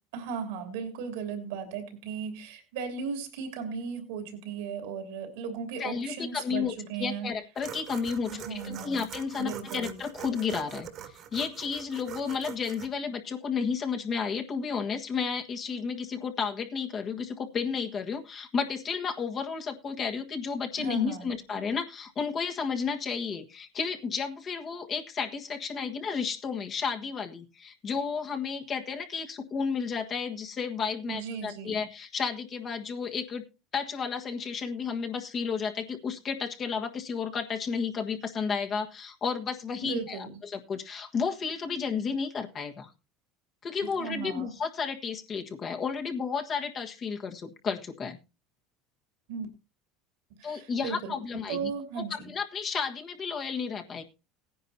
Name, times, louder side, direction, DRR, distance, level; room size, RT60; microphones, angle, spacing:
voice 1, 0.1-7.3 8.3-9.0 9.4-10.0 20.8-21.3 31.1-31.9 39.8-40.4 44.0-44.5 49.3-49.5 50.3-51.2 51.5-52.3, right 6 dB, 75° right, 6 dB, 3.1 m, -36 dB
voice 2, 5.8-6.7 7.0-33.4 33.7-42.9 43.6-48.2 50.4-51.7 52.0-54.0, left 5 dB, 40° left, 3 dB, 1.5 m, -32 dB
sound 1, 7.6-12.9, right 9 dB, 55° right, 1.9 m, -43 dB
17.5 x 10.0 x 2.8 m, 0.28 s
hypercardioid pair, 85°, 0 cm